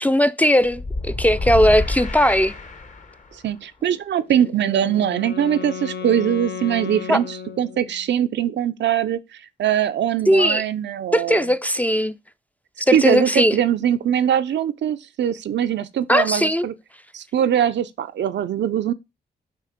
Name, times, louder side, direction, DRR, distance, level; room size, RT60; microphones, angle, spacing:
voice 1, 0.0-2.5 7.1-7.2 10.3-10.6 11.1-12.1 12.9-13.6 16.1-16.7, equal, 10° left, 0.3 m, -18 dB
sound 1, 0.6-3.3, left 3 dB, 45° left, 0.9 m, -28 dB
voice 2, 3.4-9.2 9.6-11.4 12.9-16.7 17.1-18.9, right 10 dB, 80° right, 0.5 m, -22 dB
Wind instrument woodwind instrument, 4.3-8.2, left 6 dB, 65° left, 0.5 m, -34 dB
6.7 x 2.8 x 4.9 m
wide cardioid pair, 95°, 18 cm